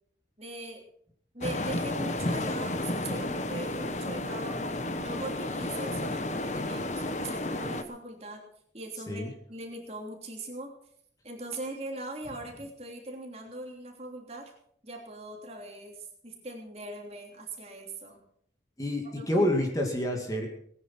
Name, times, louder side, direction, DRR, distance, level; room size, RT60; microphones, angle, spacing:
voice 1, 0.4-0.8 1.3-4.7 5.0-8.4 8.7-10.7 11.2-14.5 14.8-18.2 19.1-19.5, right 2 dB, 35° right, 1 dB, 3.2 m, -40 dB
sound 1, 1.4-7.8, left 1 dB, 40° left, 1.1 m, -32 dB
voice 2, 18.8-20.5, left 1 dB, 20° left, 1 dB, 2.3 m, -28 dB
19.0 x 10.0 x 5.9 m, 0.66 s
head